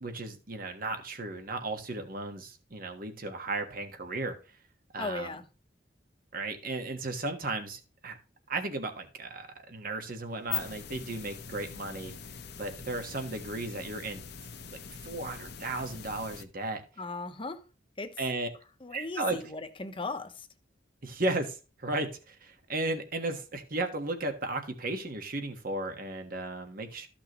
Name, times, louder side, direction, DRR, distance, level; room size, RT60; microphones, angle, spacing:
voice 1, 0.0-4.4 4.9-5.4 6.3-8.2 8.5-12.2 12.6-14.3 15.0-16.8 18.2-18.5 18.9-19.5 21.0-27.1, right 2 dB, 50° right, 1.5 m, -35 dB
voice 2, 5.0-5.4 17.0-17.6 18.0-18.1 18.8-20.3, left 3 dB, 30° left, 1.0 m, -37 dB
sound 1, 10.3-16.4, left 8 dB, 60° left, 0.9 m, -42 dB
13.5 x 6.0 x 3.1 m
head